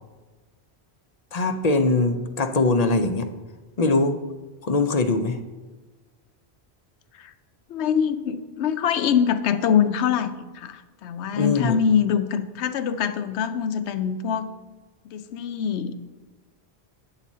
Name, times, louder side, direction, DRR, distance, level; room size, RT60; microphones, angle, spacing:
voice 1, 1.3-3.3 3.8-4.2 4.6-5.4 11.4-11.8, left 3 dB, 45° left, 8 dB, 0.5 m, -21 dB
voice 2, 7.7-14.5 15.1-15.9, left 8 dB, 85° left, 11 dB, 0.9 m, -24 dB
8.8 x 4.1 x 7.2 m, 1.3 s
omnidirectional pair, 1.1 m